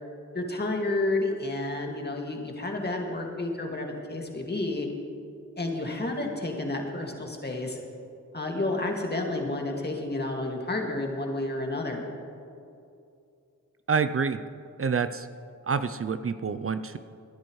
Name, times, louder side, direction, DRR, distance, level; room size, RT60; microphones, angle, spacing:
voice 1, 0.3-4.9 5.6-7.8 8.3-12.1, left 2 dB, 30° left, 1 dB, 2.2 m, -30 dB
voice 2, 13.9-14.4 14.8-15.3 15.6-17.0, right 5 dB, 45° right, 11 dB, 0.6 m, -27 dB
20.0 x 10.0 x 3.2 m, 2.5 s
cardioid pair, 45°, 32 cm